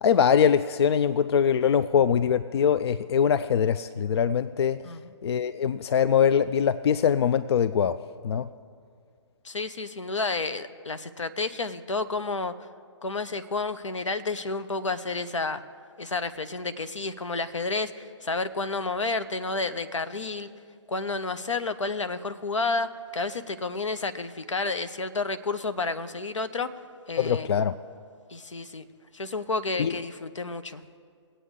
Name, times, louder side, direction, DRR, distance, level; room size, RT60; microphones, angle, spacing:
voice 1, 0.0-4.8 5.2-8.0 8.2-8.5 27.2-27.7 29.8-29.9, left 8 dB, 60° left, 15 dB, 0.4 m, -23 dB
voice 2, 9.4-12.5 13.0-15.6 16.0-20.5 20.9-26.8 27.1-27.5 28.3-28.9 29.1-30.8, left 3 dB, 90° left, 12 dB, 0.8 m, -30 dB
21.0 x 8.4 x 3.7 m, 2.1 s
figure-of-eight pair, 140°, 15 cm